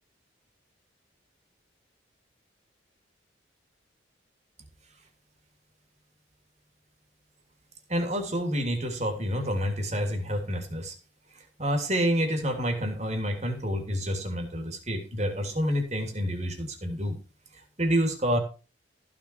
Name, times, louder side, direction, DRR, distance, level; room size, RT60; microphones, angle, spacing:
voice 1, 7.9-11.0 11.6-17.2 17.8-18.4, equal, 35° right, 5 dB, 3.1 m, -28 dB
14.5 x 7.3 x 4.8 m, 0.34 s
head